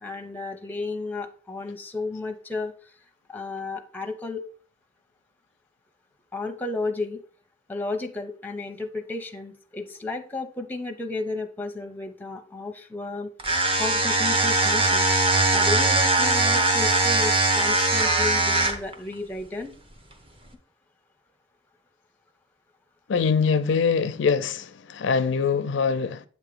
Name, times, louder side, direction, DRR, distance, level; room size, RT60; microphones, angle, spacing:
voice 1, 0.0-2.7 3.3-4.4 6.3-7.2 7.7-13.3 13.8-15.1 15.5-19.7, left 3 dB, 10° left, 0.6 m, -33 dB
sound 1, 13.4-18.9, right 2 dB, 30° right, 0.9 m, -21 dB
voice 2, 23.1-26.2, left 5 dB, 75° left, 0.4 m, -23 dB
8.1 x 2.9 x 5.0 m
head